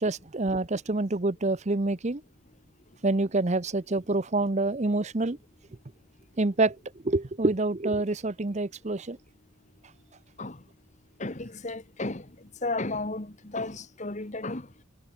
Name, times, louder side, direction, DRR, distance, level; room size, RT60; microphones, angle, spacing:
voice 1, 0.0-2.2 3.0-5.4 6.4-6.8 7.0-9.2, right 2 dB, 35° right, 0.7 m, -27 dB
voice 2, 11.2-14.7, left 2 dB, 35° left, 1.4 m, -34 dB
head